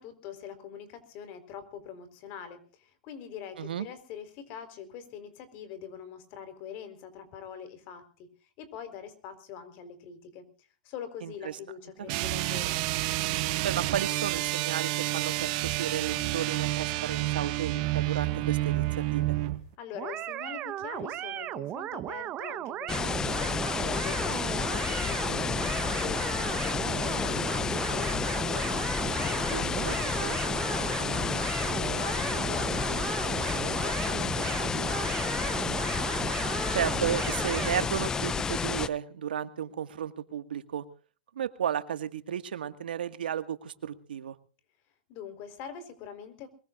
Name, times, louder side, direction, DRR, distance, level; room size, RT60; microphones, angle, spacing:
voice 1, 0.0-8.3 8.6-12.8 19.8-35.8 45.1-46.5, left 8 dB, 40° left, 10 dB, 4.3 m, -43 dB
voice 2, 11.2-11.6 13.6-19.4 29.5-30.4 36.7-40.8 41.4-44.3, right 9 dB, 90° right, 10 dB, 1.9 m, -33 dB
sound 1, 12.1-19.6, right 18 dB, 45° right, 1.7 m, -29 dB
sound 2, 19.9-37.8, right 13 dB, 30° right, 1.1 m, -36 dB
sound 3, 22.9-38.9, left 5 dB, 15° left, 0.7 m, -30 dB
23.5 x 21.5 x 2.6 m, 0.40 s
hypercardioid pair, 145°, 5 cm